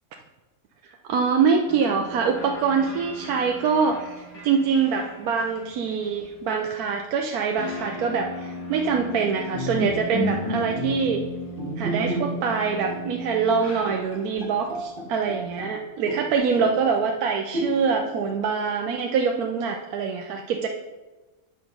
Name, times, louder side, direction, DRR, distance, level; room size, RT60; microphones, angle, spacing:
voice 1, 0.8-11.2 11.8-20.7, right 5 dB, 80° right, 3 dB, 1.2 m, -24 dB
sound 1, 1.7-14.4, left 1 dB, 10° left, 3.0 m, -39 dB
Bowed string instrument, 9.5-12.6 12.9-13.1 13.5-13.6 13.9-15.8 16.1-16.9 17.5-18.1, equal, 40° right, 1.7 m, -31 dB
8.5 x 6.0 x 5.3 m, 1.2 s
omnidirectional pair, 1.6 m